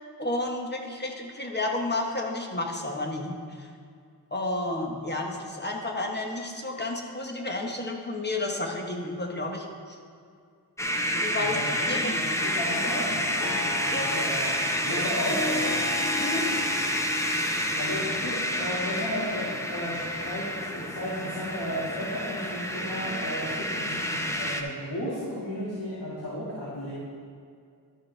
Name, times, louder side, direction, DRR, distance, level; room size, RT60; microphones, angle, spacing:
voice 1, 0.2-3.7 4.3-10.0 11.1-11.6 11.9-12.1 13.9-14.1 16.2-16.4, left 2 dB, 25° left, 1 dB, 1.0 m, -31 dB
sound 1, 10.8-24.6, equal, 5° left, 0.6 m, -29 dB
voice 2, 11.4-15.8 17.8-20.0 20.2-20.5 20.7-26.9, left 1 dB, 70° left, -9 dB, 2.1 m, -34 dB
Harp, 12.3-20.6, left 3 dB, 50° left, 0.8 m, -37 dB
12.0 x 6.6 x 3.3 m, 2.3 s
wide cardioid pair, 100°, 41 cm